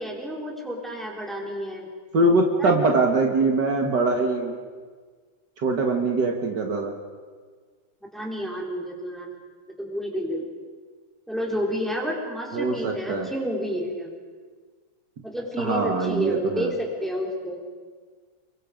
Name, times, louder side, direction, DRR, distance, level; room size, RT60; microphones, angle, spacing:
voice 1, 0.0-1.9 2.6-2.8 8.1-9.3 9.8-10.5 11.3-14.1 15.2-17.6, equal, ahead, -2 dB, 4.1 m, -30 dB
voice 2, 2.1-4.5 5.6-6.9 12.5-13.3 15.6-16.7, right 2 dB, 60° right, 2 dB, 2.3 m, -22 dB
29.5 x 22.5 x 5.2 m, 1.5 s
omnidirectional pair, 2.2 m